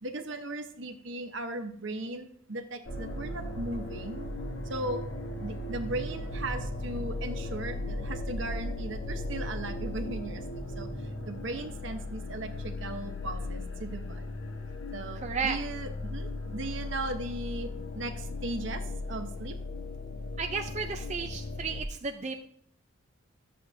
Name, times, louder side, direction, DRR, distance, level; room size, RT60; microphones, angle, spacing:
voice 1, 0.0-4.3 4.7-5.1 5.4-10.9 11.3-14.3 14.9-17.7 17.9-19.6, right 2 dB, 60° right, 6 dB, 1.0 m, -37 dB
sound 1, 2.8-21.8, left 2 dB, 75° left, 1.3 m, -37 dB
voice 2, 15.1-15.6 20.4-22.4, right 5 dB, 35° right, 4 dB, 0.5 m, -33 dB
13.5 x 7.6 x 2.7 m, 0.68 s
head